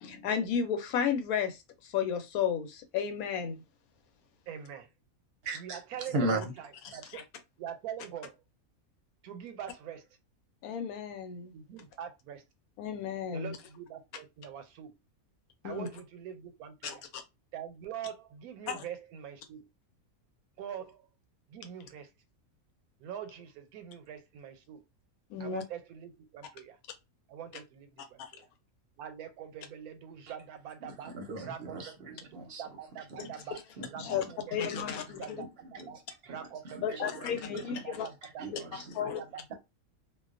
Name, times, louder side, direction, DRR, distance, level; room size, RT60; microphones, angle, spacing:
voice 1, 0.0-3.6 7.1-7.2 10.6-11.5 12.8-13.6 15.6-15.9 16.8-17.2 18.7-18.8 25.3-25.6 28.2-28.3 34.0-34.2 34.5-35.4 36.8-38.1 38.9-39.2, left 7 dB, 80° left, 1.0 m, -33 dB
voice 2, 4.5-4.9 5.5-6.7 6.9-7.2 7.6-8.4 9.2-10.1 11.5-12.4 13.3-14.9 15.6-17.0 17.5-19.7 20.6-21.1 21.5-22.1 23.0-24.8 25.4-26.8 27.3-28.4 29.0-31.1 31.4-33.6 33.9-34.2 34.5-35.5 35.9-36.0 36.3-37.3 37.7-38.5 38.8-39.5, right 9 dB, 90° right, 1.1 m, -44 dB
voice 3, 5.4-6.5 6.9-7.0 30.8-32.6 33.1-33.4 33.8-34.3 34.6-35.9 36.2-37.8 38.2-39.2, right 2 dB, 55° right, 0.7 m, -38 dB
2.4 x 2.2 x 2.4 m
omnidirectional pair, 1.5 m